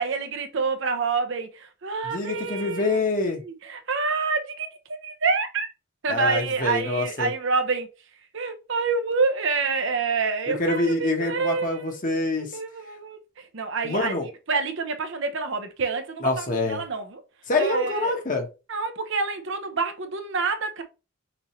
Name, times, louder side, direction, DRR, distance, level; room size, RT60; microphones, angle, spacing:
voice 1, 0.0-3.0 3.4-5.7 6.0-7.9 8.3-12.0 12.4-13.2 13.5-14.2 14.5-17.2 17.6-18.1 18.7-20.8, right 4 dB, 65° right, 0.8 m, -27 dB
voice 2, 2.0-3.4 6.1-7.3 10.5-12.6 13.8-14.3 16.2-16.8 17.5-18.5, left 2 dB, 40° left, 1.2 m, -26 dB
6.1 x 2.7 x 3.1 m
head